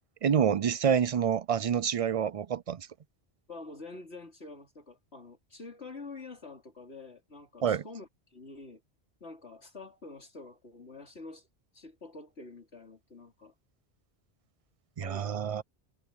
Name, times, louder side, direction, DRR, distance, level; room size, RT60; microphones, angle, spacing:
voice 1, 0.2-2.9 7.6-7.8 15.0-15.6, right 8 dB, 55° right, 0.4 m, -27 dB
voice 2, 3.5-8.8 9.2-11.5 11.7-13.5 15.0-15.4, left 3 dB, 85° left, 4.2 m, -47 dB
omnidirectional pair, 1.1 m